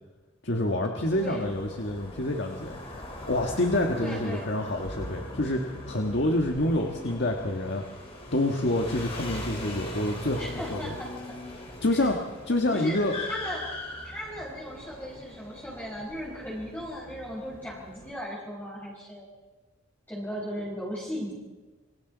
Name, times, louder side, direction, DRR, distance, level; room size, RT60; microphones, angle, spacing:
voice 1, 0.4-2.8 3.3-7.8 8.3-10.9 11.8-13.1, left 1 dB, 60° left, 2 dB, 1.6 m, -27 dB
sound 1, 1.0-18.1, left 1 dB, 30° left, 4.7 m, -40 dB
voice 2, 1.1-1.6 4.0-4.5 10.3-11.5 11.9-12.1 12.5-13.0 13.3-13.7 14.0-19.3 20.1-21.3, equal, 10° left, -7 dB, 5.0 m, -37 dB
27.5 x 24.0 x 4.0 m, 1.3 s
head